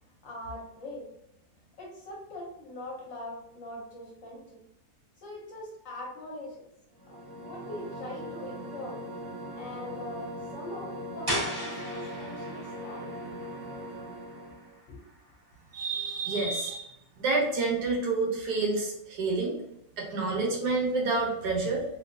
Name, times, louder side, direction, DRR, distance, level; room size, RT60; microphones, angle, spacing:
voice 1, 0.0-1.1 1.6-4.6 5.2-6.6 7.1-9.0 9.5-13.3 14.9-15.0, left 1 dB, 60° left, -2 dB, 1.0 m, -42 dB
sound 1, 6.9-14.7, equal, 55° right, 1.0 m, -40 dB
sound 2, 11.3-16.9, equal, 15° right, 1.1 m, -39 dB
voice 2, 15.7-16.9 17.2-19.5 20.0-21.8, right 3 dB, 75° right, -1 dB, 1.3 m, -28 dB
3.1 x 2.6 x 2.6 m, 0.83 s
omnidirectional pair, 1.8 m